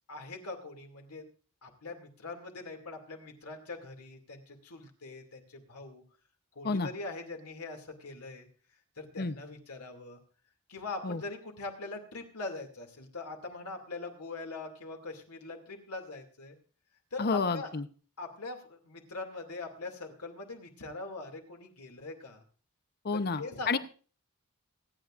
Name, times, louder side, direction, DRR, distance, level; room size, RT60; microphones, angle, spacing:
voice 1, 0.1-1.2 1.6-6.0 6.5-8.5 9.0-10.2 10.7-16.6 17.1-17.7 18.2-22.4 23.1-23.8, left 3 dB, 90° left, 3 dB, 2.5 m, -42 dB
voice 2, 17.2-17.8 23.0-23.8, left 4 dB, 45° left, 11 dB, 0.8 m, -30 dB
26.5 x 9.4 x 2.5 m, 0.38 s
head